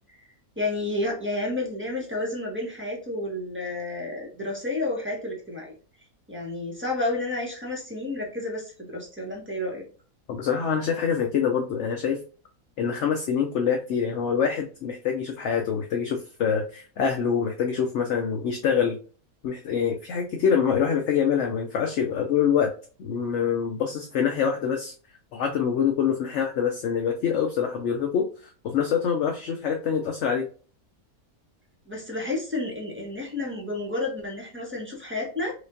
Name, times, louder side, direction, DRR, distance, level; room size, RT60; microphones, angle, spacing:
voice 1, 0.6-5.7 6.3-9.8 31.9-35.5, left 2 dB, 10° right, -2 dB, 1.0 m, -30 dB
voice 2, 10.3-12.2 12.8-19.0 19.4-22.7 23.0-24.9 25.3-30.5, left 7 dB, 65° left, 3 dB, 0.7 m, -25 dB
5.0 x 2.4 x 2.5 m, 0.39 s
omnidirectional pair, 1.6 m